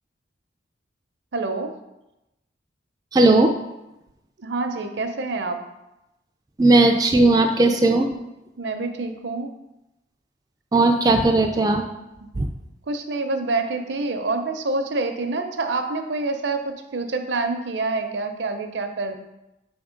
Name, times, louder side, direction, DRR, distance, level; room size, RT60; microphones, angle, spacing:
voice 1, 1.3-1.7 4.4-5.6 8.6-9.6 12.9-19.1, right 3 dB, 70° right, 6 dB, 0.6 m, -27 dB
voice 2, 3.1-3.5 6.6-8.1 10.7-11.8 12.4-12.5, right 2 dB, 20° right, 3 dB, 0.3 m, -17 dB
5.9 x 3.5 x 5.0 m, 0.93 s
head